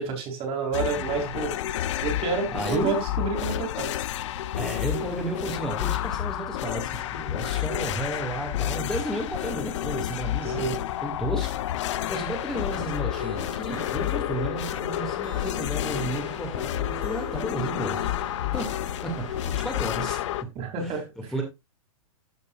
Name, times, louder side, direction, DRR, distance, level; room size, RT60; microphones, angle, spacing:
voice 1, 0.0-1.5 2.0-4.0 10.5-10.8 20.5-21.0, right 4 dB, 30° right, 3.0 m, -29 dB
sound 1, 0.7-20.4, left 12 dB, 55° left, 0.6 m, -30 dB
voice 2, 0.9-1.4 2.5-3.0 4.6-11.6 12.1-18.0 18.5-18.7 19.0-20.2 20.6-21.4, right 1 dB, 5° left, 2.2 m, -33 dB
sound 2, 12.9-19.5, right 6 dB, 70° right, 4.7 m, -44 dB
13.0 x 5.3 x 2.5 m
hypercardioid pair, 120°, 18 cm